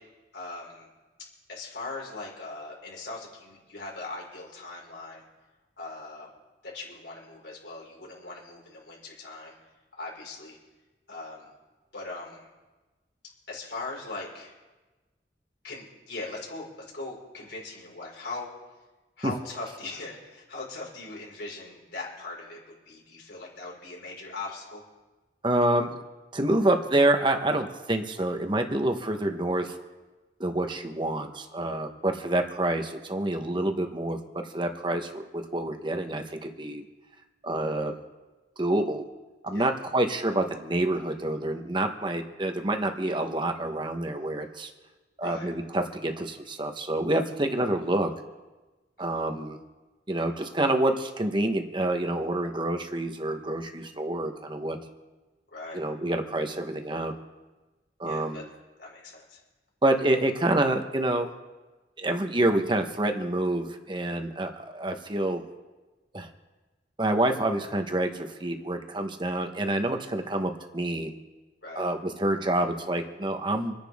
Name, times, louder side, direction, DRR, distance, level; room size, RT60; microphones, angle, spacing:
voice 1, 0.3-0.9 1.5-5.2 5.8-6.3 6.6-9.5 10.0-10.6 11.1-11.5 11.9-12.5 13.5-14.5 15.6-16.7 16.9-18.5 19.2-22.6 22.8-24.8 39.5-39.7 45.2-45.5 49.0-49.2 55.5-55.8 58.0-58.4 58.8-59.4 71.6-71.8, left 3 dB, 80° left, -3 dB, 5.2 m, -40 dB
voice 2, 25.4-26.0 26.3-29.8 30.4-36.8 37.4-37.9 38.6-39.0 39.4-44.7 45.2-48.1 49.0-49.6 50.1-54.8 55.7-57.1 58.0-58.5 59.8-61.3 62.0-65.4 66.1-66.3 67.0-71.1 71.8-73.7, right 1 dB, 25° right, 5 dB, 1.2 m, -27 dB
27.0 x 10.0 x 3.7 m, 1.2 s
head